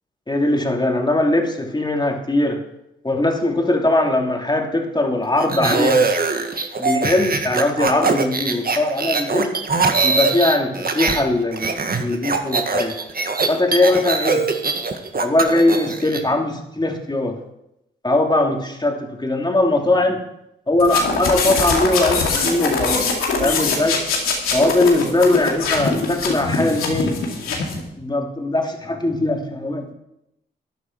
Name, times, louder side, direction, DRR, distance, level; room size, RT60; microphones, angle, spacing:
voice 1, 0.3-2.6 3.0-6.1 6.8-9.5 10.0-12.9 13.5-14.4 15.2-17.4 18.0-20.2 20.7-23.0 23.4-24.0 24.5-27.2 28.0-29.9, left 2 dB, 20° left, 2 dB, 2.9 m, -20 dB
sound 1, 5.4-11.2 11.5-16.2, right 4 dB, 45° right, 1.7 m, -22 dB
sound 2, 20.8-27.8, left 4 dB, 85° left, 2.5 m, -22 dB
13.5 x 9.9 x 4.7 m, 0.84 s
supercardioid pair, 45°, 21 cm